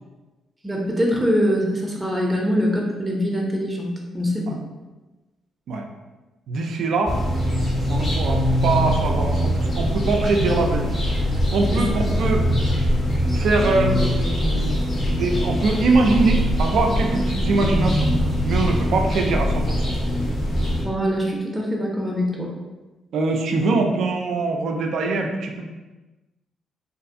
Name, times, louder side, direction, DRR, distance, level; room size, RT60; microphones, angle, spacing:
voice 1, 0.6-4.6 11.7-11.9 20.8-22.5, equal, 15° right, -2 dB, 0.6 m, -23 dB
voice 2, 6.5-7.2 7.9-10.9 11.5-12.5 13.3-14.8 15.1-18.1 18.4-20.0 23.1-25.7, right 3 dB, 70° right, 2 dB, 0.3 m, -23 dB
sound 1, 7.1-20.8, equal, 45° left, 0.8 m, -22 dB
2.5 x 2.3 x 2.6 m, 1.2 s
hypercardioid pair, 50°, 0 cm